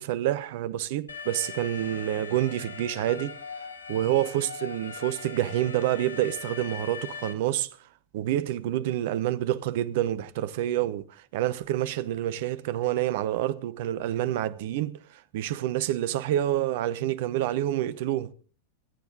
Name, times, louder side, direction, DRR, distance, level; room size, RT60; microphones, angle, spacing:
voice 1, 0.0-3.3 3.9-7.7 8.1-18.3, right 13 dB, 50° right, 0.9 m, -28 dB
Alarm, 1.1-7.3, left 6 dB, 75° left, 1.5 m, -40 dB
25.5 x 9.3 x 3.9 m
figure-of-eight pair, 90°, 0 cm